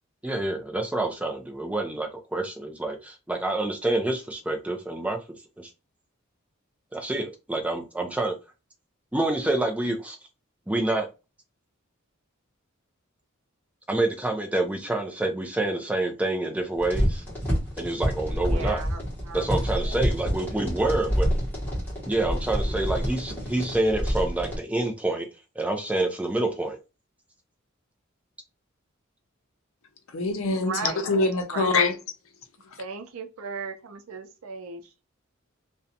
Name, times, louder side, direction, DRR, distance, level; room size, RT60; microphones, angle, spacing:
voice 1, 0.2-5.2 5.6-5.7 6.9-8.3 9.1-10.2 10.7-11.1 13.9-17.2 17.8-18.8 19.3-21.3 22.1-25.3 25.6-26.8, right 2 dB, 5° right, 0.4 m, -27 dB
sound 1, 16.8-24.6, equal, 10° left, 1.1 m, -28 dB
voice 2, 18.4-20.0 30.5-31.1 31.4-31.9 32.8-35.0, right 5 dB, 90° right, 0.5 m, -37 dB
voice 3, 30.1-31.9, left 3 dB, 75° left, 0.5 m, -24 dB
2.5 x 2.1 x 2.7 m
head